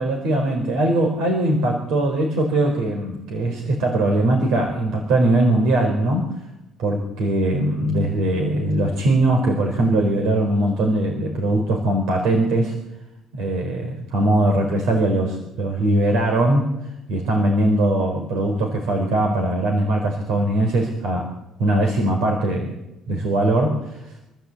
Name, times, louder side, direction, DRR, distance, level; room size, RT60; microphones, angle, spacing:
voice 1, 0.0-6.4 6.8-12.7 13.3-16.7 17.1-21.3 21.6-22.8 23.1-24.2, right 1 dB, 85° right, 2 dB, 4.2 m, -21 dB
25.5 x 14.0 x 8.3 m, 0.95 s
cardioid pair, 120°, 0 cm